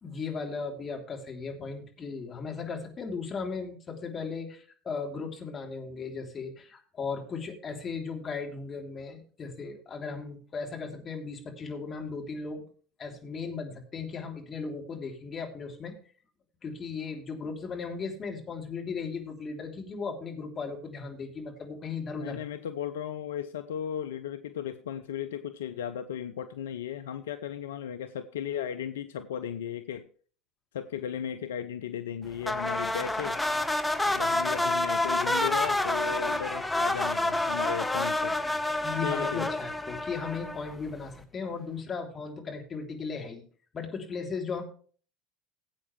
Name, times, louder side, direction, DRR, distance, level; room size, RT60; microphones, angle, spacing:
voice 1, 0.0-12.6 13.0-15.9 16.6-22.4 38.8-43.4 43.7-44.6, left 5 dB, 35° left, 2 dB, 3.3 m, -36 dB
voice 2, 22.1-30.1 30.7-33.4 34.1-38.4 39.0-39.5, left 9 dB, 75° left, 9 dB, 0.6 m, -36 dB
sound 1, 32.4-40.9, left 2 dB, 10° left, 1.2 m, -28 dB
17.0 x 8.4 x 3.3 m, 0.42 s
figure-of-eight pair, 70°, 0 cm